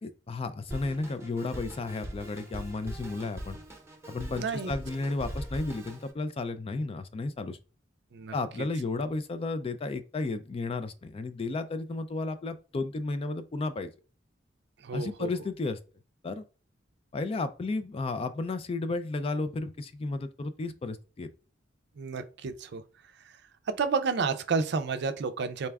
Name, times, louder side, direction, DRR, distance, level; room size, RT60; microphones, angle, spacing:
voice 1, 0.0-3.6 4.1-7.6 8.3-13.9 14.9-15.8 16.2-16.4 17.1-21.3, left 3 dB, 30° left, 0.3 m, -33 dB
Drum kit, 0.7-6.1, equal, 15° right, 0.8 m, -41 dB
voice 2, 4.4-4.7 8.1-8.3 14.8-15.3 22.0-22.8 23.8-25.7, right 5 dB, 60° right, 0.4 m, -30 dB
4.1 x 2.3 x 3.4 m
head